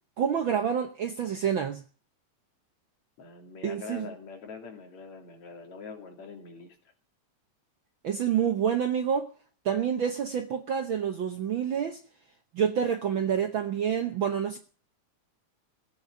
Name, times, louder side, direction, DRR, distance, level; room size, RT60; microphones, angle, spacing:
voice 1, 0.2-1.8 3.6-4.1 8.0-9.3 9.6-12.0 12.5-14.6, right 8 dB, 60° right, 1.3 m, -28 dB
voice 2, 3.2-6.7, left 4 dB, 65° left, 4.2 m, -43 dB
17.0 x 8.6 x 8.4 m
omnidirectional pair, 3.4 m